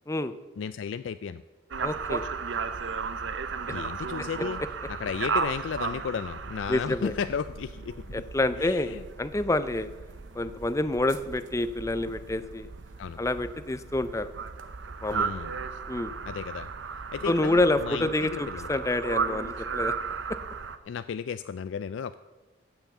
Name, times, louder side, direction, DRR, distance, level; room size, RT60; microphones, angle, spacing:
voice 1, 0.6-1.4 3.7-4.6 4.9-8.1 8.6-9.0 13.0-13.2 15.1-15.6 16.2-16.7 17.1-18.7 20.9-22.2, left 6 dB, 80° left, 12 dB, 0.4 m, -34 dB
sound 1, 1.7-20.8, right 5 dB, 75° right, 0.7 m, -35 dB
voice 2, 1.8-2.2 6.7-7.1 8.1-9.9 10.3-12.7 13.2-14.3 15.0-15.4 15.9-16.1 17.2-19.9, left 2 dB, 15° left, 13 dB, 0.5 m, -28 dB
15.5 x 5.8 x 7.1 m, 1.2 s
head